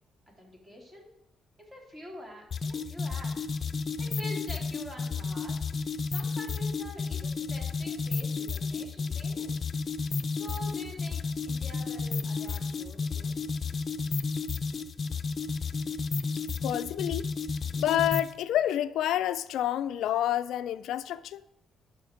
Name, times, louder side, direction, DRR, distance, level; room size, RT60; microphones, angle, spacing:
voice 1, 0.4-1.1 1.6-3.3 3.8-5.6 6.1-9.5 10.3-13.4, left 1 dB, 20° right, 3.1 m, -46 dB
sound 1, 2.5-18.4, left 4 dB, 40° left, 0.6 m, -32 dB
voice 2, 16.6-17.3 17.8-21.4, left 11 dB, 80° left, 0.3 m, -28 dB
11.0 x 5.7 x 5.1 m
cardioid pair, 90°, 0 cm